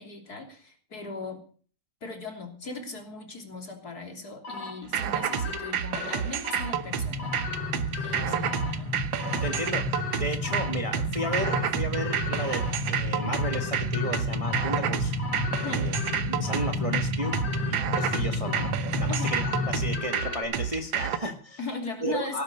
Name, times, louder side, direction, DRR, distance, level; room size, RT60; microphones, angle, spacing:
voice 1, 0.0-1.4 2.0-7.3 8.0-8.9 15.6-15.9 19.1-19.3 21.6-22.4, left 3 dB, 50° left, 3 dB, 3.7 m, -38 dB
sound 1, 4.4-20.4, left 5 dB, 80° left, 4.4 m, -39 dB
sound 2, 4.9-21.2, right 9 dB, 85° right, 1.8 m, -30 dB
sound 3, 6.8-20.0, left 2 dB, 5° left, 2.3 m, -32 dB
voice 2, 9.4-15.1 15.7-15.9 16.3-18.7 19.0-21.6 22.0-22.4, equal, 20° right, 5 dB, 1.5 m, -34 dB
18.0 x 9.4 x 6.5 m, 0.43 s
omnidirectional pair, 2.0 m